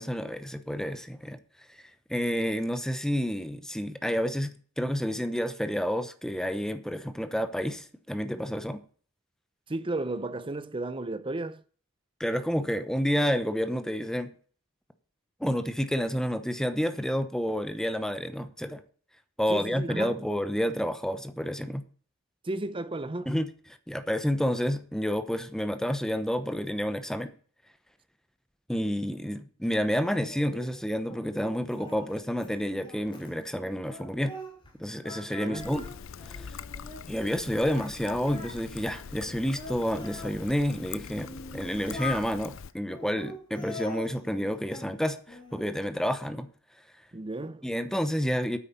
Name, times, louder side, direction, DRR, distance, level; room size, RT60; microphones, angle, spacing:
voice 1, 0.0-1.4 2.1-8.8 12.2-14.3 15.4-18.8 19.4-21.8 23.3-23.5 23.9-27.3 28.7-34.4 34.8-35.8 36.3-36.5 37.1-46.5 47.6-48.6, equal, 5° left, 0.9 m, -29 dB
voice 2, 9.7-11.6 19.5-20.2 22.4-23.3 35.4-35.7 47.1-47.7, right 2 dB, 25° right, 0.7 m, -33 dB
Singing, 30.2-34.7 35.0-37.4 37.7-40.4 41.0-42.3 42.9-44.9 45.3-45.9, left 2 dB, 25° left, 3.5 m, -43 dB
Trickle dribble, 35.6-42.7, left 6 dB, 70° left, 0.5 m, -43 dB
9.2 x 8.5 x 6.9 m
head